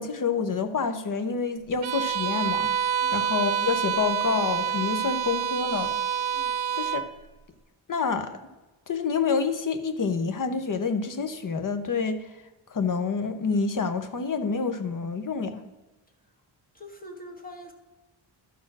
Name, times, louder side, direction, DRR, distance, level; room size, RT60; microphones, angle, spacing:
voice 1, 0.0-2.8 3.1-5.9 6.8-7.0 7.9-8.4 8.9-12.2 12.7-15.6, left 5 dB, 45° left, 10 dB, 0.9 m, -28 dB
Bowed string instrument, 1.8-7.1, right 8 dB, 65° right, 0.8 m, -27 dB
voice 2, 16.7-17.7, equal, 20° left, 4 dB, 1.4 m, -44 dB
12.0 x 4.4 x 6.0 m, 1.1 s
wide cardioid pair, 110°, 47 cm